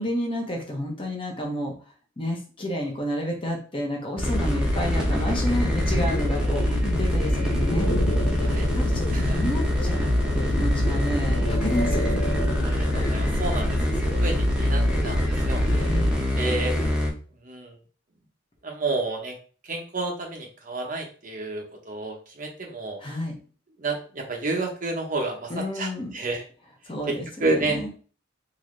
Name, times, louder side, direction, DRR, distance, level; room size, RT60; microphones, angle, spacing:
voice 1, 0.0-1.7 2.2-7.9 8.4-12.0 14.6-14.9 15.7-16.1 23.0-23.3 25.5-26.1 26.9-27.9, left 1 dB, 25° left, -1 dB, 1.0 m, -30 dB
sound 1, 4.2-17.1, left 1 dB, 5° right, 0.8 m, -24 dB
sound 2, 5.8-16.9, equal, 70° left, 0.8 m, -32 dB
voice 2, 12.6-13.8 14.2-15.6 16.4-16.9 17.4-17.8 18.6-19.3 19.6-23.0 23.8-26.4 27.1-27.2 27.4-27.9, right 2 dB, 45° right, 2 dB, 0.8 m, -30 dB
3.9 x 2.6 x 3.1 m, 0.39 s
head